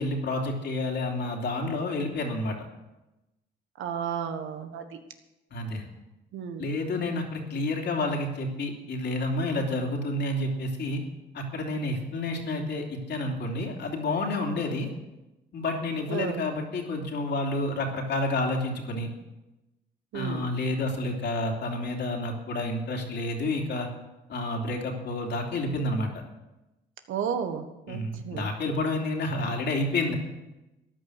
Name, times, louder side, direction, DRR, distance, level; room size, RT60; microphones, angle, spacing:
voice 1, 0.0-2.6 5.5-5.8 6.6-11.0 11.3-14.9 15.5-19.1 20.1-23.9 24.3-26.2 27.9-30.2, left 2 dB, 60° left, 1 dB, 3.0 m, -29 dB
voice 2, 3.8-5.0 6.3-6.7 16.1-16.4 20.1-20.5 27.1-28.0 28.2-28.5, right 7 dB, 80° right, 8 dB, 1.4 m, -32 dB
14.0 x 10.0 x 6.4 m, 1.0 s
cardioid pair, 90°, 20 cm